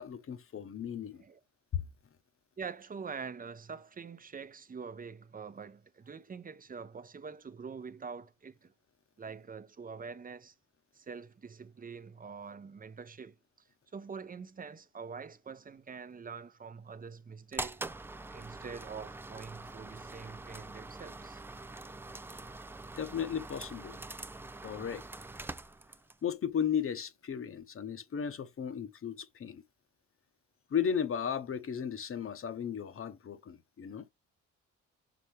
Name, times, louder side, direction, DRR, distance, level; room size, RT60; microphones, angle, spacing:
voice 1, 0.0-1.2 23.0-24.0 24.6-25.1 26.2-29.6 30.7-34.1, left 8 dB, 45° left, 1.0 m, -35 dB
voice 2, 2.6-8.7 9.2-10.5 10.9-13.4 13.9-17.8 18.3-21.4, right 5 dB, 30° right, 0.8 m, -45 dB
sound 1, 17.5-26.2, right 2 dB, 10° right, 0.3 m, -44 dB
5.8 x 5.4 x 3.3 m
cardioid pair, 90°, 30 cm